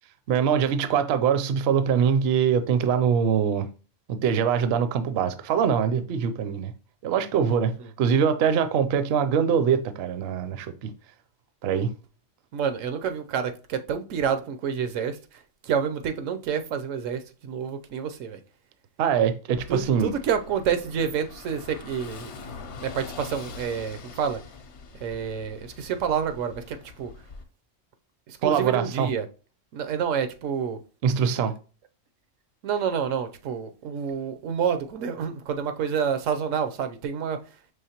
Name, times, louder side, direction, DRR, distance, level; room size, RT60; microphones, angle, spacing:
voice 1, 0.3-3.7 4.1-6.7 7.0-10.9 11.6-11.9 19.0-20.1 28.4-29.1 31.0-31.5, right 7 dB, 65° right, 0.7 m, -23 dB
voice 2, 12.5-15.2 15.7-18.4 19.7-22.3 22.8-24.4 25.0-27.1 28.4-29.3 29.7-30.8 32.6-37.4, right 7 dB, 85° right, 1.0 m, -28 dB
Car passing by / Engine, 19.5-27.4, left 4 dB, 65° left, 0.9 m, -43 dB
5.6 x 3.2 x 2.8 m
omnidirectional pair, 1.3 m